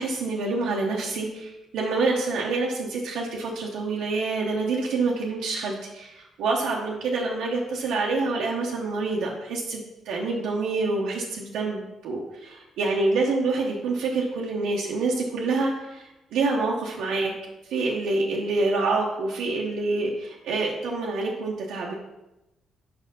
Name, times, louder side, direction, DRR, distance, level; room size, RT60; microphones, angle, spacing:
voice 1, 0.0-9.8 10.1-17.3 17.7-21.9, right 3 dB, 80° right, -2 dB, 0.8 m, -27 dB
5.3 x 4.3 x 5.3 m, 0.98 s
supercardioid pair, 65°, 0 cm